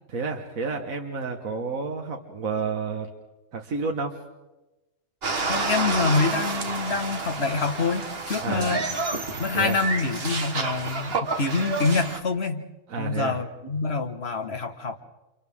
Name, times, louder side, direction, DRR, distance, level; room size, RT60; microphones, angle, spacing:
voice 1, 0.1-3.1 3.5-4.2 8.4-8.7 9.5-9.8 12.9-13.4, right 4 dB, 70° right, 2 dB, 1.9 m, -30 dB
sound 1, 5.2-12.2, right 3 dB, 45° right, 1.7 m, -29 dB
voice 2, 5.5-8.9 9.4-12.6 13.0-15.0, left 4 dB, 45° left, 5 dB, 1.8 m, -26 dB
30.0 x 28.0 x 3.7 m, 1.1 s
omnidirectional pair, 1.5 m